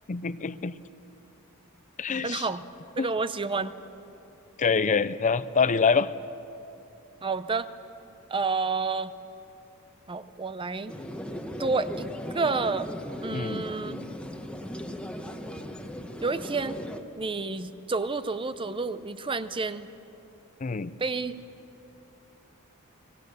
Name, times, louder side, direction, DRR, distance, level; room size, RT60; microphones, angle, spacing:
voice 1, 0.1-0.7 2.0-2.5 3.0-3.1 4.6-6.1 13.3-13.7 20.6-20.9, left 5 dB, 35° left, 15 dB, 0.5 m, -25 dB
voice 2, 2.2-2.6 3.0-3.7 7.2-7.7 8.3-9.1 10.1-10.9 11.6-12.1 12.3-12.9 13.2-14.0 16.2-16.8 17.2-19.9 21.0-21.4, right 4 dB, 25° right, 13 dB, 0.6 m, -29 dB
sound 1, 10.9-17.0, equal, 5° left, 1.2 m, -37 dB
29.5 x 19.0 x 6.8 m, 2.8 s
head